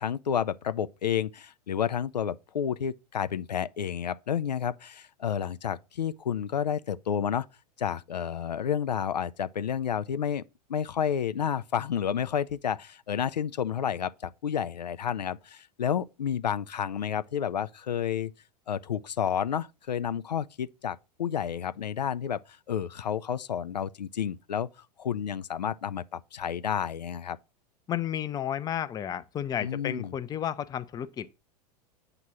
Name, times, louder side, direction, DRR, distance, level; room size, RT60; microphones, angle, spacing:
voice 1, 0.0-7.5 7.8-10.4 10.7-18.3 18.7-22.4 22.7-24.7 25.0-27.4 29.6-30.2, left 8 dB, 80° left, 0.4 m, -30 dB
voice 2, 27.9-31.3, left 10 dB, 20° left, 0.5 m, -32 dB
8.1 x 2.9 x 6.0 m
figure-of-eight pair, 90°, 21 cm